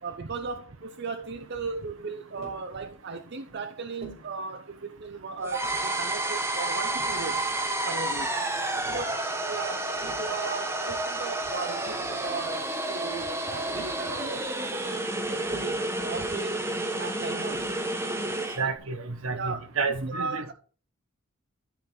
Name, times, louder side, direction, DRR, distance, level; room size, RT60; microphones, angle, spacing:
voice 1, 0.0-7.4 7.9-8.3 8.9-16.7 17.0-17.8 18.6-18.8 19.3-19.6 20.0-20.5, right 4 dB, 50° right, 0.6 m, -37 dB
Tap, 2.4-2.7 4.0-4.3 5.4-5.9 7.0-7.8 8.8-9.1 9.8-10.3 11.5-11.6 11.8-12.4 13.7-14.1 15.4-15.9 17.5-17.9, right 3 dB, 30° right, 3.6 m, -45 dB
sound 1, 5.4-18.6, right 2 dB, 10° right, 0.9 m, -30 dB
voice 2, 18.6-20.4, right 4 dB, 65° right, 1.1 m, -30 dB
12.5 x 4.5 x 3.7 m
head